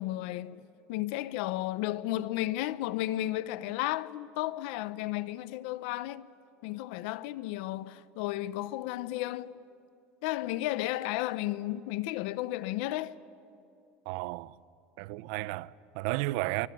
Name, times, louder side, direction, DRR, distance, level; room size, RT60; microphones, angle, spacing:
voice 1, 0.0-6.3 6.6-9.6 10.2-13.1, left 15 dB, 75° left, 0.9 m, -33 dB
voice 2, 14.1-14.6 15.0-16.7, right 19 dB, 75° right, 0.7 m, -33 dB
25.5 x 23.5 x 9.3 m
supercardioid pair, 135°, 6 cm